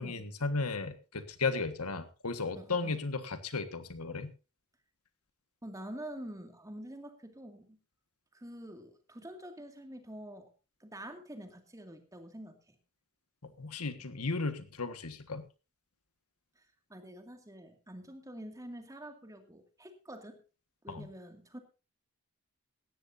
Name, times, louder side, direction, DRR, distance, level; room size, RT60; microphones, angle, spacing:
voice 1, 0.0-4.3 13.4-15.5 20.9-21.1, left 3 dB, 90° left, 10 dB, 1.6 m, -35 dB
voice 2, 2.6-3.0 5.6-7.8 8.3-10.5 10.8-12.8 16.6-20.4 20.8-21.6, right 1 dB, 15° right, 6 dB, 2.2 m, -47 dB
18.0 x 14.0 x 2.7 m, 0.32 s
head